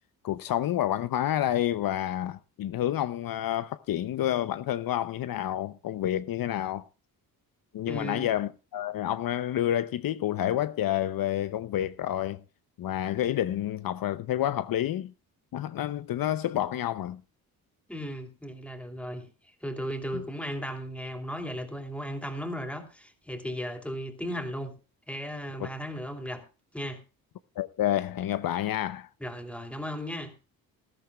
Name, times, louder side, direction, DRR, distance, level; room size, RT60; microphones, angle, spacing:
voice 1, 0.2-6.9 7.7-12.4 12.8-15.1 15.5-17.2 20.1-20.2 25.6-25.7 27.6-29.1, left 12 dB, 65° left, 0.7 m, -29 dB
voice 2, 7.8-8.3 17.9-19.3 19.6-24.7 25.1-26.4 26.7-27.0 29.2-30.3, equal, 5° left, 2.9 m, -36 dB
19.5 x 14.0 x 2.3 m
cardioid pair, 135°, 37 cm